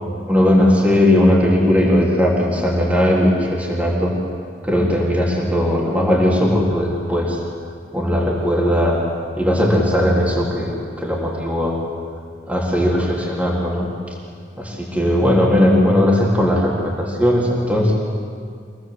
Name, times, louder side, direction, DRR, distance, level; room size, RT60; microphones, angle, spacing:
voice 1, 0.3-4.1 4.6-7.4 7.9-9.0 9.4-11.8 12.5-13.9 14.6-18.0, left 1 dB, 5° right, -3 dB, 3.7 m, -18 dB
25.5 x 18.0 x 8.0 m, 2.2 s
head